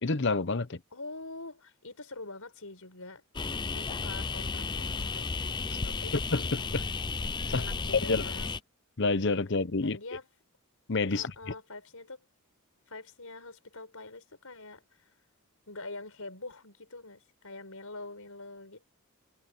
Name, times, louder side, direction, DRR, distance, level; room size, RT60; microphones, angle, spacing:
voice 1, 0.0-0.8 6.3-6.9 7.5-7.6 8.1-8.3 9.0-10.0 10.9-11.3, left 3 dB, 55° left, 0.9 m, -28 dB
voice 2, 0.9-5.3 5.8-6.2 7.5-8.6 9.8-10.3 11.1-12.2 12.9-14.8 15.7-18.8, left 2 dB, 80° left, 4.9 m, -45 dB
sound 1, 3.3-8.6, left 4 dB, 20° left, 0.4 m, -33 dB
head